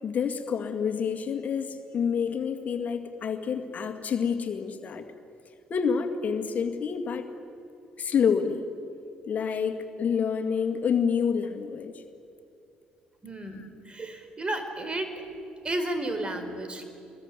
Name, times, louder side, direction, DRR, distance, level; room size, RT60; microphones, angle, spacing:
voice 1, 0.0-5.0 5.7-7.2 8.0-8.7 9.2-12.0 13.5-13.7, left 6 dB, 50° left, 6 dB, 2.1 m, -28 dB
voice 2, 13.2-15.2 15.6-16.8, right 1 dB, 30° right, 8 dB, 4.5 m, -32 dB
25.0 x 21.0 x 9.9 m, 2.7 s
hypercardioid pair, 55°, 3 cm